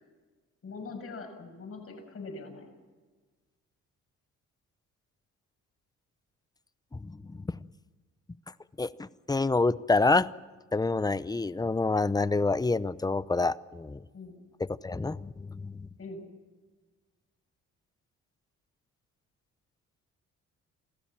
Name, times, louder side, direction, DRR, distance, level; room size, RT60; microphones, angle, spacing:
voice 1, 0.6-2.7 14.1-14.3 16.0-16.2, left 3 dB, 50° left, 4 dB, 6.9 m, -42 dB
voice 2, 6.9-7.6 8.8-10.3 10.7-14.0 14.8-15.9, left 3 dB, 15° left, 17 dB, 0.7 m, -27 dB
27.5 x 16.0 x 7.5 m, 1.3 s
cardioid pair, 90°, 30 cm